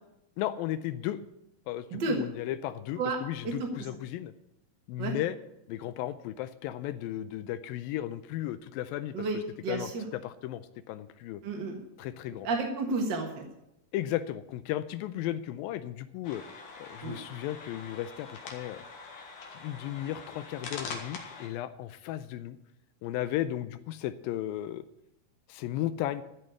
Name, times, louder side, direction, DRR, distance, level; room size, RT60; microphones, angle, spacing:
voice 1, 0.4-1.2 1.7-4.3 4.9-5.4 5.7-11.4 12.0-12.5 13.9-16.4 16.8-18.8 19.6-22.6 23.0-24.8 25.5-26.2, left 13 dB, 85° left, 13 dB, 2.4 m, -35 dB
voice 2, 1.9-2.2 3.0-3.2 3.4-3.7 5.0-5.2 9.1-10.0 11.4-11.8 12.4-13.4 17.0-17.2, right 3 dB, 50° right, 2 dB, 1.4 m, -31 dB
sound 1, 16.2-21.5, left 4 dB, 65° left, 3.1 m, -44 dB
14.0 x 5.5 x 9.5 m, 0.83 s
omnidirectional pair, 4.1 m